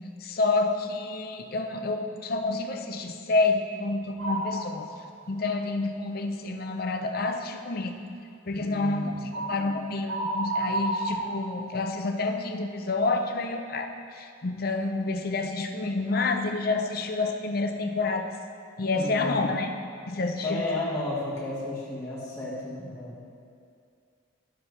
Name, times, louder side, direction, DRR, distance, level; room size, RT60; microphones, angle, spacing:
voice 1, 0.2-4.9 5.3-7.9 8.5-18.3 18.8-19.7 20.1-20.6, left 3 dB, 45° left, 5 dB, 0.6 m, -28 dB
sound 1, 4.2-4.8 5.3-5.4 9.3-9.6 10.1-12.0, right 2 dB, 85° right, 1.1 m, -31 dB
voice 2, 8.5-9.3 18.9-19.5 20.4-23.2, left 2 dB, 15° left, -9 dB, 1.6 m, -33 dB
11.5 x 7.5 x 3.2 m, 2.4 s
head